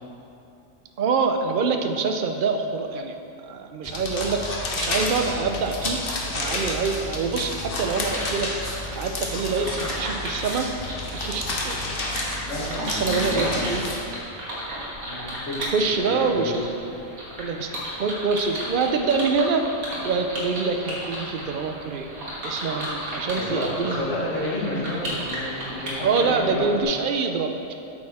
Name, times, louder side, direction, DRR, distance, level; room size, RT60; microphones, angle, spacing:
voice 1, 1.0-3.1 3.4-6.0 6.3-8.5 8.9-10.7 11.2-11.8 12.6-13.8 15.6-16.6 17.4-19.7 20.0-22.1 22.4-24.1 26.0-27.7, right 4 dB, 60° right, 5 dB, 0.5 m, -25 dB
sound 1, 3.8-14.0, left 2 dB, 45° left, 1.1 m, -30 dB
sound 2, 8.1-26.8, equal, 85° right, 2.1 m, -34 dB
voice 2, 12.5-13.7 15.0-16.5 23.4-26.7, left 1 dB, 60° left, -6 dB, 2.1 m, -30 dB
8.6 x 6.7 x 4.2 m, 2.8 s
omnidirectional pair, 1.4 m